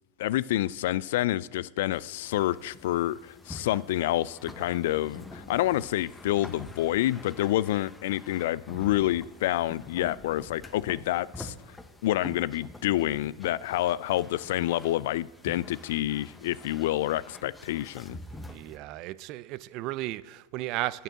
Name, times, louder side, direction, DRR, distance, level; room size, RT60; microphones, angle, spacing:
voice 1, 0.2-11.5 12.0-18.2, left 14 dB, 70° left, 0.3 m, -28 dB
sound 1, 1.9-18.8, left 1 dB, 10° left, 0.9 m, -47 dB
voice 2, 18.3-21.0, right 17 dB, 50° right, 0.4 m, -35 dB
9.1 x 6.8 x 7.4 m
hypercardioid pair, 105°, 0 cm